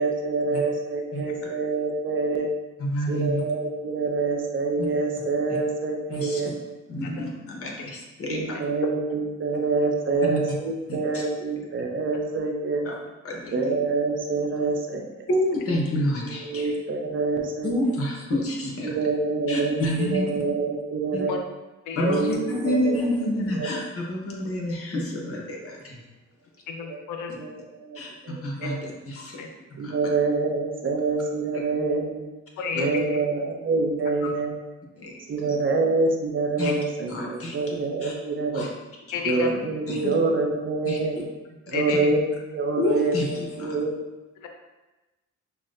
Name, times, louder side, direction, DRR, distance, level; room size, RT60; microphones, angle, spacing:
voice 1, 0.0-2.5 3.1-6.5 8.3-12.8 13.5-15.0 16.2-17.7 18.8-21.3 22.0-23.7 26.8-27.0 27.4-28.0 28.2-28.8 29.8-32.3 32.7-34.5 35.3-38.6 39.3-41.2 41.7-42.2 42.5-43.9, right 3 dB, 40° right, 2 dB, 0.6 m, -26 dB
voice 2, 2.8-3.4 6.1-6.4 6.9-8.6 10.3-10.4 10.9-11.2 12.8-12.9 13.2-13.7 15.3-16.7 17.6-18.9 19.5-20.4 21.1-21.2 21.9-26.0 27.9-29.4 29.8-29.9 31.5-31.6 35.0-35.6 36.6-36.7 37.1-38.1 38.5-38.7 39.1-39.2 39.9-40.0 40.8-41.0 41.9-42.0 42.8-43.8, left 1 dB, 50° left, -2 dB, 1.0 m, -28 dB
voice 3, 26.7-27.4 28.6-28.7 29.4-29.5 31.7-31.8 32.6-33.2 34.2-34.3 36.7-36.8 39.1-39.5 40.0-40.1 41.7-42.1 44.4-44.5, left 6 dB, 85° left, 4 dB, 0.5 m, -31 dB
5.8 x 2.1 x 2.5 m, 1.1 s
cardioid pair, 90°, 30 cm